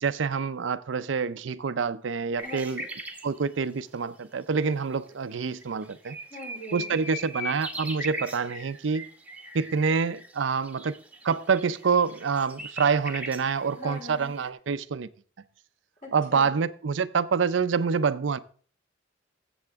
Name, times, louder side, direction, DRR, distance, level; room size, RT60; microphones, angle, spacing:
voice 1, 0.0-2.8 3.2-6.2 6.7-9.1 9.5-11.0 11.2-15.1 16.1-18.4, right 5 dB, 75° right, 0.5 m, -27 dB
voice 2, 2.4-2.9 6.3-7.0 13.8-14.3 16.0-16.5, left 2 dB, 45° left, 4.4 m, -41 dB
sound 1, 2.4-3.3 4.7-4.8 5.3-5.4 5.6-14.5, right 1 dB, 10° right, 1.1 m, -39 dB
14.5 x 7.8 x 3.5 m
head